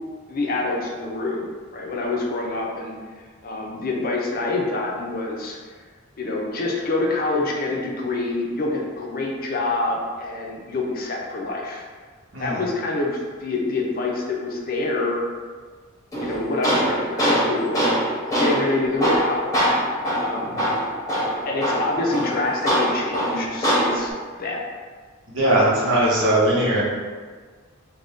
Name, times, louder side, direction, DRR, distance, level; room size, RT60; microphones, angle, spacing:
voice 1, 0.3-1.5 1.7-2.9 3.4-5.6 6.2-11.8 12.4-15.2 16.2-19.7 20.2-20.6 21.5-24.7 25.4-25.8, left 2 dB, 45° left, -1 dB, 0.5 m, -26 dB
Tools, 16.1-24.1, equal, 15° left, 0.7 m, -23 dB
voice 2, 25.3-26.8, right 1 dB, 70° right, -6 dB, 0.9 m, -20 dB
2.6 x 2.2 x 3.4 m, 1.5 s
head